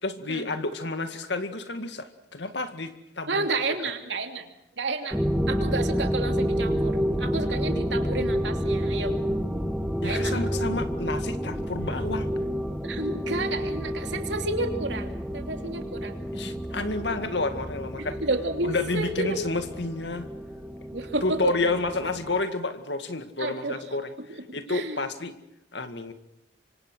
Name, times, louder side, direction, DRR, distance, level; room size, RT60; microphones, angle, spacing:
voice 1, 0.0-3.5 10.0-12.3 16.3-18.2 18.6-20.3 21.2-24.1 24.5-25.3 25.7-26.1, left 3 dB, 80° left, 8 dB, 2.1 m, -30 dB
voice 2, 3.3-4.4 4.8-5.2 5.5-9.2 10.0-10.6 12.8-16.2 18.2-19.4 20.9-21.7 23.4-23.8 24.3-25.0, right 2 dB, 85° right, 5 dB, 3.0 m, -31 dB
sound 1, 5.1-22.4, equal, 5° right, 1.4 m, -29 dB
26.5 x 25.0 x 6.3 m, 0.82 s
head